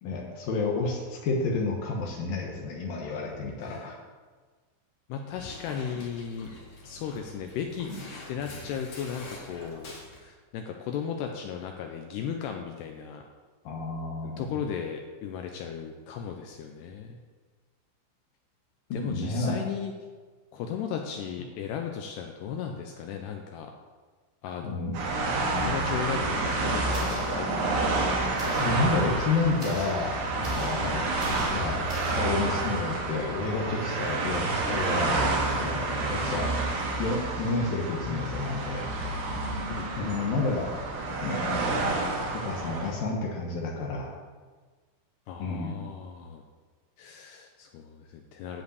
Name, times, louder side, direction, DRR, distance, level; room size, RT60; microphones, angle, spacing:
voice 1, 0.0-4.0 13.6-14.6 18.9-19.7 24.6-25.0 28.5-31.1 31.5-31.8 32.2-35.2 35.5-36.5 37.0-39.2 39.9-40.7 41.2-41.9 42.3-44.2 45.4-45.9, left 3 dB, 70° left, 0 dB, 2.3 m, -30 dB
voice 2, 5.1-6.5 6.8-7.9 8.3-9.9 10.2-13.2 14.2-17.2 18.9-19.9 20.5-23.7 24.4-28.0 29.2-29.3 30.7-31.0 35.2-35.6 37.7-38.7 39.7-40.4 45.3-46.4 47.0-48.6, left 7 dB, 90° left, 3 dB, 2.4 m, -36 dB
Dog, 5.3-10.2, left 2 dB, 45° left, 2.2 m, -45 dB
sound 1, 24.9-42.9, right 3 dB, 65° right, 3.4 m, -29 dB
sound 2, 26.9-28.0 28.4-32.9, right 1 dB, 20° right, 2.7 m, -39 dB
10.5 x 5.2 x 8.2 m, 1.4 s
omnidirectional pair, 5.4 m